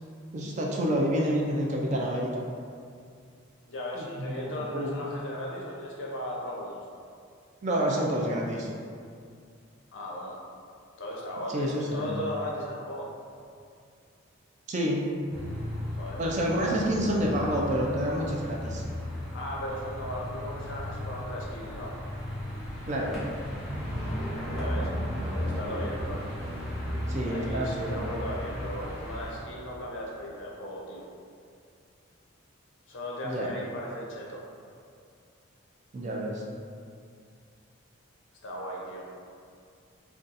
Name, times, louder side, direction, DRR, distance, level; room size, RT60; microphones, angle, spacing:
voice 1, 0.3-2.4 3.9-5.0 7.6-8.7 11.5-12.2 14.7-15.2 16.2-18.8 22.9-23.1 27.1-28.3 33.2-33.5 35.9-36.4, equal, 35° right, -2 dB, 0.3 m, -28 dB
voice 2, 3.7-6.8 9.9-10.4 11.0-13.1 15.9-16.2 19.3-22.0 24.5-24.9 25.3-26.3 27.2-31.1 32.9-34.4 38.4-39.1, equal, 60° left, -3 dB, 0.6 m, -37 dB
sound 1, 15.3-29.3, equal, ahead, 0.6 m, -35 dB
2.5 x 2.3 x 3.9 m, 2.3 s
head